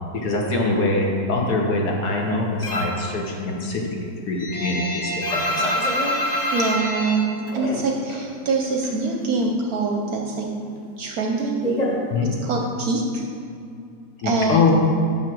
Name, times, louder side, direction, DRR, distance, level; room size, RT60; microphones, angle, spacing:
voice 1, 0.1-5.7 12.1-12.3 14.2-14.7, left 3 dB, 60° left, 0 dB, 1.4 m, -23 dB
sound 1, 2.6-3.1 3.4-8.3 8.5-9.6 9.9-12.7, equal, 35° left, 0.6 m, -26 dB
voice 2, 6.5-7.2 7.5-10.5 11.0-11.7 12.4-13.2 14.2-14.7, right 3 dB, 65° right, 1 dB, 1.0 m, -24 dB
6.4 x 5.8 x 6.1 m, 2.5 s
omnidirectional pair, 2.0 m